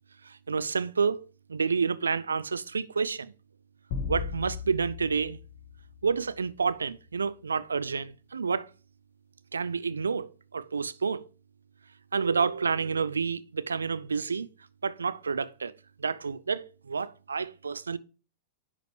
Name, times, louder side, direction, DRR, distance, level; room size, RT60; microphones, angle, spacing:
voice 1, 0.2-1.2 1.5-3.3 4.1-5.4 6.0-8.7 9.5-11.3 12.1-14.5 14.8-15.7 16.0-18.0, right 5 dB, 75° right, 0.4 m, -29 dB
sound 1, 3.9-6.5, left 6 dB, 50° left, 2.1 m, -37 dB
10.0 x 4.9 x 3.3 m
figure-of-eight pair, 95°, 0 cm